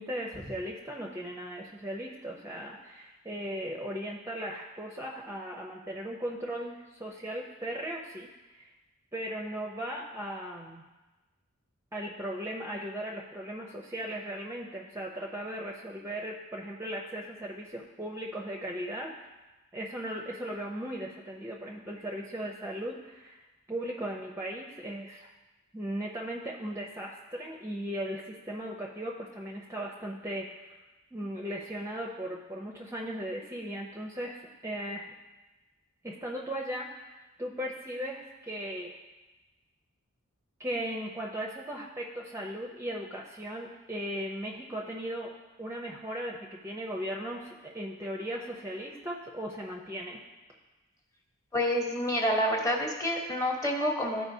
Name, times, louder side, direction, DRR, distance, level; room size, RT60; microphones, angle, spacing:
voice 1, 0.0-8.3 8.6-8.7 9.1-10.9 11.9-19.1 19.7-23.4 23.7-25.3 25.7-30.5 31.1-35.1 36.0-39.0 40.6-45.3 45.6-50.2, equal, 15° right, -2 dB, 0.5 m, -37 dB
voice 2, 51.5-54.3, equal, 15° left, 0 dB, 1.0 m, -28 dB
13.5 x 4.7 x 2.7 m, 1.1 s
head